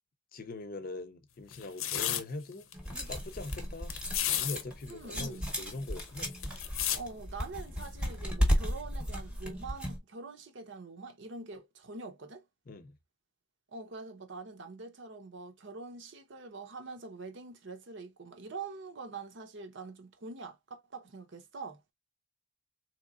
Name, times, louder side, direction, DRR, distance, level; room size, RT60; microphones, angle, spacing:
voice 1, 0.3-3.9 4.4-6.3 12.7-13.0, left 2 dB, 45° left, 0.6 m, -42 dB
sound 1, 1.5-2.2 2.7-2.8 3.0-3.5 3.9-4.6 4.9-5.0 5.2-7.0 7.8-8.0, left 10 dB, 80° left, 0.7 m, -33 dB
sound 2, 2.7-10.0, equal, 5° right, 0.9 m, -34 dB
voice 2, 4.9-5.5 6.9-12.4 13.7-21.8, right 3 dB, 60° right, 0.8 m, -44 dB
3.7 x 2.9 x 2.4 m
head